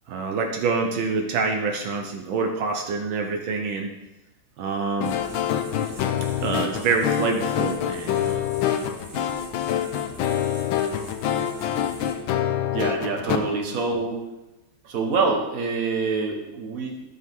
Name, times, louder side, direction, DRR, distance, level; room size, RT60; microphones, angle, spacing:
voice 1, 0.1-3.9 4.6-5.1 6.4-8.5 9.1-9.3 13.2-13.5, right 4 dB, 75° right, 2 dB, 1.5 m, -26 dB
sound 1, 5.0-13.4, left 10 dB, 90° left, 1.5 m, -26 dB
sound 2, 5.0-12.2, equal, 25° right, 1.9 m, -45 dB
voice 2, 12.7-14.3 14.8-17.1, right 4 dB, 45° right, 1 dB, 1.6 m, -26 dB
12.0 x 6.4 x 3.6 m, 1.0 s
omnidirectional pair, 2.2 m